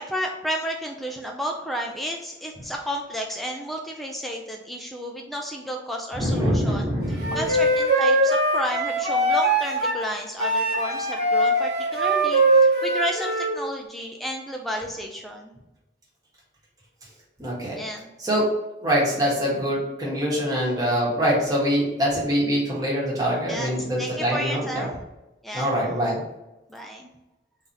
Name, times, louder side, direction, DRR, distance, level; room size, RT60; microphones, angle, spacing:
voice 1, 0.0-6.8 7.3-15.5 17.8-18.1 23.5-23.7 24.0-25.0 25.4-25.8 26.7-27.1, equal, ahead, 0 dB, 0.4 m, -32 dB
voice 2, 6.2-7.4 17.4-17.8 18.2-18.5 18.8-24.9 25.5-26.2, equal, 20° right, -6 dB, 1.4 m, -24 dB
Wind instrument woodwind instrument, 7.2-10.0 10.4-13.5, right 1 dB, 60° right, 1.3 m, -21 dB
3.8 x 2.7 x 4.5 m, 0.97 s
head